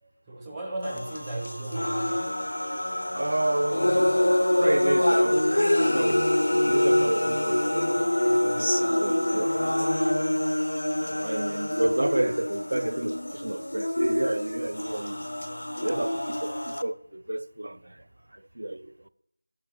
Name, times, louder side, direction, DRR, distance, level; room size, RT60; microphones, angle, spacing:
voice 1, 0.0-2.5, right 2 dB, 5° right, 0.6 m, -36 dB
sound 1, 0.8-16.8, left 1 dB, 85° left, 0.5 m, -26 dB
voice 2, 3.1-4.2 4.6-7.9 8.4-9.8 10.9-15.3 15.8-18.0 18.6-19.1, right 1 dB, 65° right, 0.4 m, -30 dB
6.8 x 4.4 x 6.5 m
figure-of-eight pair, 175°, 0 cm